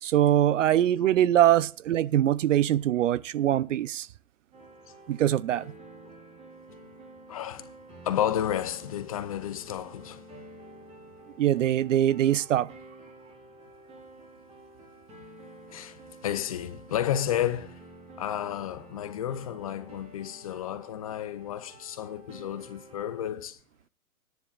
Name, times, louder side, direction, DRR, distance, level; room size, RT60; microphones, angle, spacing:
voice 1, 0.0-4.1 5.1-5.7 11.4-12.7, right 12 dB, 60° right, 0.6 m, -23 dB
sound 1, 4.5-23.2, right 1 dB, 15° right, 3.8 m, -50 dB
voice 2, 7.3-7.7 8.0-10.2 15.7-17.8 18.2-23.6, left 11 dB, 25° left, 0.5 m, -32 dB
17.0 x 10.5 x 2.4 m
hypercardioid pair, 150°, 45 cm